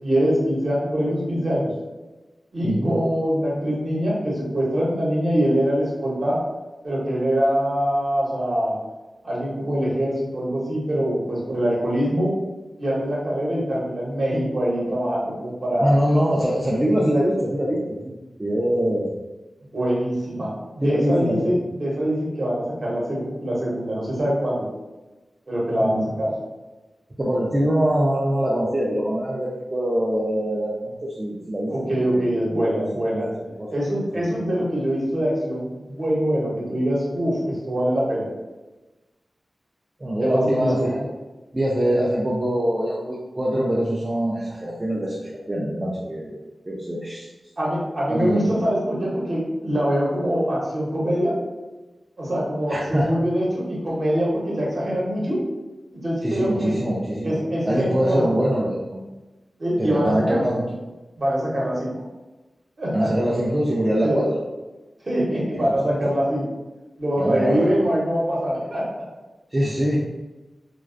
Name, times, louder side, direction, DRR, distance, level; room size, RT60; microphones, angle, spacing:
voice 1, 0.0-1.7 2.5-6.4 6.8-8.7 9.2-12.3 12.8-15.9 19.7-20.5 20.7-24.7 25.5-26.3 31.7-33.3 33.7-38.3 40.2-40.9 47.6-51.3 52.2-55.4 56.0-56.7 57.2-58.3 59.6-60.4 61.2-61.9 62.8-63.1 64.0-64.2 65.0-66.5 67.0-69.0, equal, 50° right, -6 dB, 0.8 m, -23 dB
voice 2, 15.8-19.1 20.8-21.5 25.8-26.1 27.2-33.3 33.6-33.7 34.1-34.4 40.0-41.1 41.5-46.4 46.7-47.3 48.1-48.4 52.7-53.1 56.2-57.4 57.6-59.0 59.8-60.6 62.9-64.4 65.5-66.1 67.2-67.7 69.5-70.0, equal, 25° right, -5 dB, 0.3 m, -24 dB
2.3 x 2.2 x 2.4 m, 1.1 s
wide cardioid pair, 110°, 0 cm